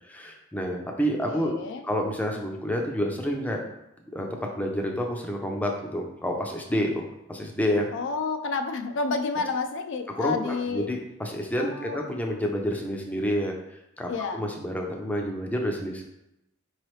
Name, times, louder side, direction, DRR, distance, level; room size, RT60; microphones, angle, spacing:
voice 1, 0.1-1.5 1.8-3.7 4.1-4.3 4.5-7.0 7.3-7.9 10.2-13.6 14.0-16.0, equal, 10° left, 1 dB, 0.5 m, -29 dB
voice 2, 1.3-1.8 7.9-10.9 11.5-12.0 14.1-14.4, left 4 dB, 60° left, 7 dB, 0.4 m, -30 dB
4.6 x 3.2 x 3.1 m, 0.85 s
head